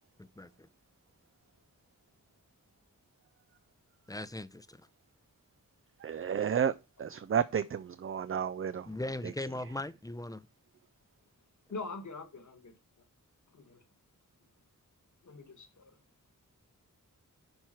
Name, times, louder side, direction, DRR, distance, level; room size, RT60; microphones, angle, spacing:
voice 1, 0.2-0.7 4.1-4.8 8.9-10.5, left 1 dB, 10° left, 0.6 m, -39 dB
voice 2, 6.0-6.7 7.0-8.9, right 8 dB, 40° right, 0.4 m, -31 dB
voice 3, 11.7-12.7 13.5-13.8 15.2-15.9, left 3 dB, 60° left, 1.6 m, -43 dB
10.5 x 4.7 x 4.4 m
wide cardioid pair, 105°, 34 cm